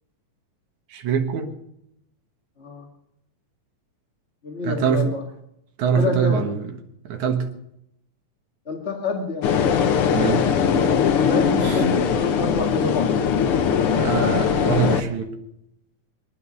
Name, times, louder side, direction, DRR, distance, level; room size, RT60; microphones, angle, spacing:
voice 1, 0.9-1.5 4.6-5.2 5.8-6.7 7.0-7.5 10.1-10.5 11.6-11.8 13.8-15.3, right 6 dB, 65° right, 5 dB, 2.8 m, -23 dB
voice 2, 4.4-5.2 6.0-6.5 8.6-9.5 11.3-13.1, left 3 dB, 25° left, 1 dB, 1.5 m, -27 dB
sound 1, 9.4-15.0, left 7 dB, 65° left, 1.5 m, -20 dB
25.0 x 9.7 x 5.6 m, 0.79 s
omnidirectional pair, 3.7 m